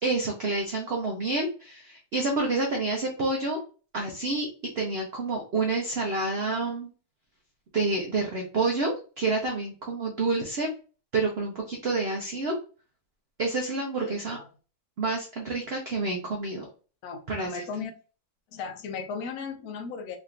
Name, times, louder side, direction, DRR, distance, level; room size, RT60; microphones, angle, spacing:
voice 1, 0.0-3.6 3.9-4.5 4.7-6.9 7.7-10.7 11.1-12.5 13.4-14.4 15.0-16.7 17.3-17.6, right 3 dB, 60° right, 0 dB, 0.6 m, -28 dB
voice 2, 14.0-14.5 17.0-17.9 18.5-20.2, left 5 dB, 70° left, 6 dB, 1.1 m, -36 dB
3.3 x 2.9 x 2.4 m, 0.36 s
omnidirectional pair, 1.8 m